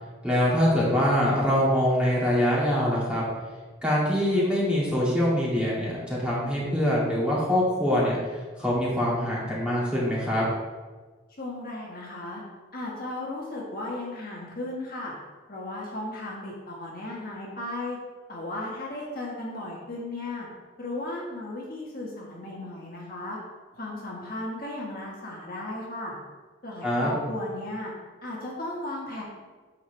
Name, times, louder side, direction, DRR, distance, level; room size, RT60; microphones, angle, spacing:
voice 1, 0.2-3.2 3.8-10.4 26.8-27.1, equal, 5° right, -7 dB, 2.4 m, -24 dB
voice 2, 11.4-12.4 12.7-15.1 15.5-18.0 18.3-20.5 20.8-23.4 23.7-26.1 26.6-27.9 28.2-29.2, left 2 dB, 45° left, -4 dB, 1.6 m, -35 dB
9.4 x 7.0 x 3.4 m, 1.3 s
head